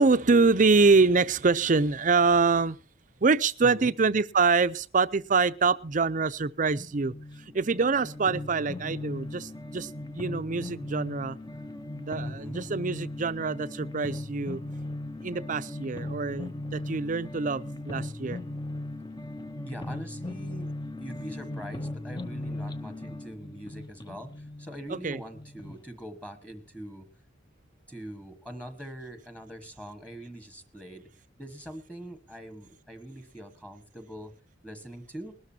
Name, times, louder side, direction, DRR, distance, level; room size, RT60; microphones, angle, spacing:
voice 1, 0.0-2.8 3.2-7.1 7.5-11.4 12.0-14.6 15.2-18.4 24.9-25.2, right 4 dB, 40° right, 14 dB, 0.6 m, -25 dB
sound 1, 6.7-25.8, left 1 dB, 20° left, 0.8 m, -38 dB
voice 2, 12.2-12.7 19.7-20.7 21.0-27.1 27.9-31.0 31.4-34.3 34.6-35.3, equal, 5° left, 8 dB, 1.4 m, -43 dB
20.5 x 13.0 x 2.8 m, 0.36 s
head